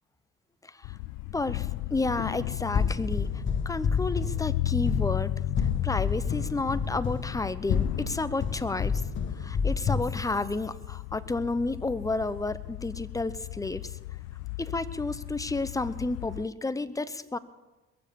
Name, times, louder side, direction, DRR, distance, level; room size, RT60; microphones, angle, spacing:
voice 1, 0.6-1.0 1.3-9.0 9.3-14.0 14.6-17.4, left 3 dB, 10° left, 14 dB, 0.8 m, -31 dB
sound 1, 0.8-16.5, left 17 dB, 80° left, 0.5 m, -35 dB
sound 2, 2.7-10.2, left 5 dB, 40° left, 1.2 m, -30 dB
22.0 x 7.5 x 7.0 m, 1.1 s
supercardioid pair, 80°, 30 cm